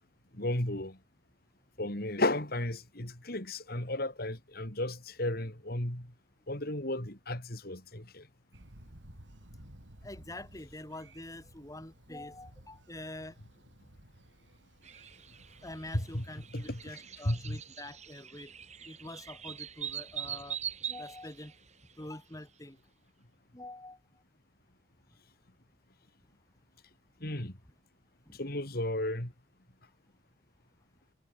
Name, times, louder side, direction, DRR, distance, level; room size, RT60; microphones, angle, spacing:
voice 1, 0.3-1.0 1.8-6.1 6.5-8.3 15.9-16.2 16.5-16.8 17.2-17.6 27.2-27.6 28.4-29.3, left 1 dB, 55° left, 4.3 m, -34 dB
Thunder, 8.5-17.0, right 1 dB, 80° right, 5.0 m, -56 dB
voice 2, 10.0-13.4 15.6-18.5 18.9-20.6 20.9-21.5 22.0-22.8 23.5-24.0 28.3-28.4, left 1 dB, 20° left, 2.5 m, -45 dB
sound 1, 14.8-22.1, right 9 dB, 40° right, 6.5 m, -43 dB
head